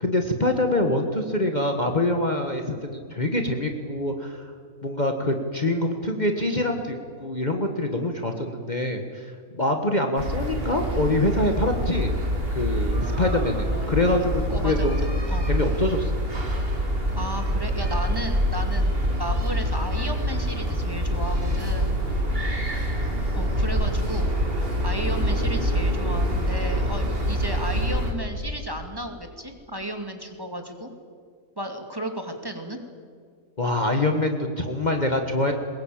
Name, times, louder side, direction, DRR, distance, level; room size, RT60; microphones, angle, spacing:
voice 1, 0.0-4.5 4.8-12.1 12.5-15.2 15.4-16.2 33.6-35.5, left 1 dB, 30° left, 4 dB, 1.6 m, -25 dB
sound 1, 10.2-28.1, equal, 40° right, 3.3 m, -25 dB
voice 2, 14.5-15.5 17.2-22.0 23.3-24.5 24.8-30.9 31.6-32.8, right 1 dB, 15° right, 4 dB, 2.4 m, -34 dB
23.0 x 21.0 x 8.8 m, 2.1 s
omnidirectional pair, 1.5 m